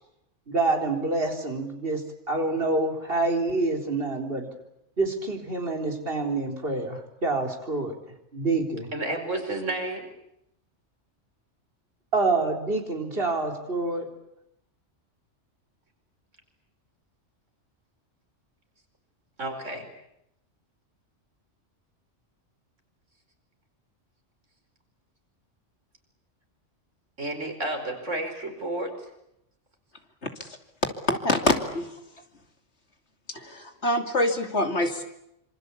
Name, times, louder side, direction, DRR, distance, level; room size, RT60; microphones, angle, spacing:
voice 1, 0.5-2.0 2.3-4.5 5.0-8.0 8.3-8.9 12.1-14.1, right 3 dB, 50° right, 3 dB, 4.2 m, -27 dB
voice 2, 8.9-10.1 19.4-19.9 27.2-28.9, right 2 dB, 90° right, 5 dB, 5.3 m, -31 dB
voice 3, 31.1-32.0 33.3-35.0, left 2 dB, 65° left, 6 dB, 3.0 m, -25 dB
26.5 x 26.0 x 8.5 m, 0.81 s
omnidirectional pair, 1.2 m